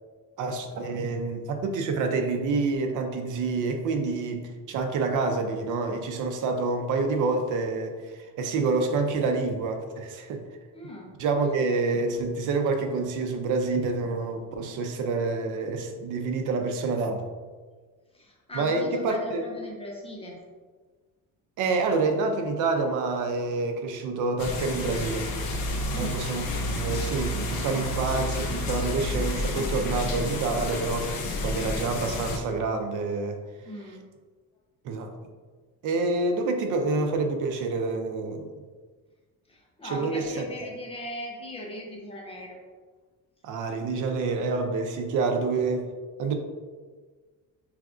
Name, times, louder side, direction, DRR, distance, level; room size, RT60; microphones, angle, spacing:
voice 1, 0.4-10.4 11.2-17.3 18.5-19.4 21.6-25.3 25.9-26.5 26.8-33.4 34.8-35.1 35.8-38.5 39.8-40.4 43.4-45.9 46.2-46.3, right 3 dB, 60° right, 5 dB, 0.5 m, -27 dB
voice 2, 10.7-11.1 18.1-20.4 25.9-26.2 33.7-34.0 39.5-42.6, left 1 dB, 20° left, -1 dB, 0.4 m, -39 dB
sound 1, 24.4-32.4, left 1 dB, 90° left, 0.8 m, -30 dB
4.7 x 3.3 x 2.5 m, 1.4 s
cardioid pair, 180°, 34 cm